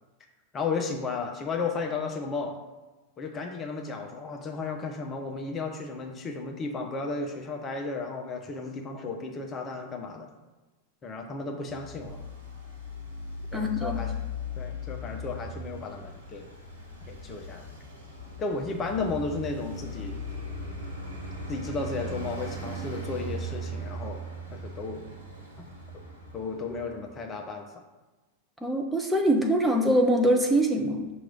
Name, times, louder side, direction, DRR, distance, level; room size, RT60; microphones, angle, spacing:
voice 1, 0.5-2.6 3.2-10.3 11.0-12.2 13.5-14.1 14.5-16.5 17.1-17.6 18.4-20.1 21.5-24.2 24.5-25.0 25.6-25.7 26.3-27.7, left 4 dB, 25° left, 2 dB, 0.7 m, -34 dB
Traffic noise roadway noise, 11.7-27.2, left 1 dB, 75° right, 1.3 m, -38 dB
voice 2, 13.5-14.0 28.6-31.1, right 1 dB, 5° right, 1 dB, 0.7 m, -23 dB
5.9 x 3.0 x 5.2 m, 1.2 s
figure-of-eight pair, 90°, 0 cm